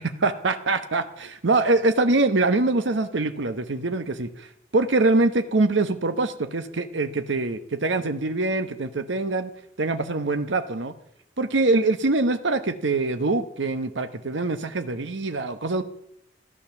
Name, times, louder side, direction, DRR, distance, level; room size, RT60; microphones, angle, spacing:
voice 1, 0.0-4.5 4.7-9.5 9.8-10.9 11.4-15.8, right 2 dB, 80° right, 9 dB, 1.0 m, -24 dB
14.5 x 11.0 x 7.0 m, 0.72 s
head